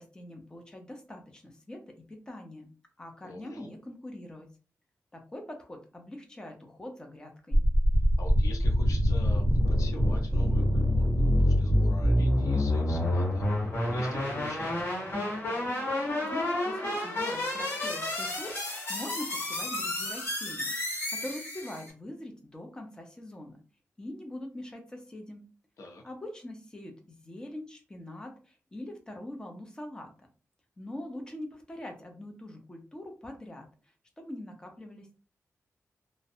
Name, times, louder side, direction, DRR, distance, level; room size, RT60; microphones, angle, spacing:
voice 1, 0.0-2.7 3.0-4.5 5.1-7.6 16.2-20.7 21.1-23.6 24.0-25.4 26.0-30.1 30.8-33.7 34.2-35.1, left 1 dB, 15° left, 3 dB, 0.5 m, -43 dB
voice 2, 3.2-3.7 8.2-13.4 13.9-14.8 25.8-26.0, left 2 dB, 85° left, 2 dB, 0.5 m, -45 dB
sound 1, 7.5-21.9, equal, 45° left, 1.1 m, -27 dB
2.5 x 2.0 x 2.6 m, 0.35 s
wide cardioid pair, 155°, 5 cm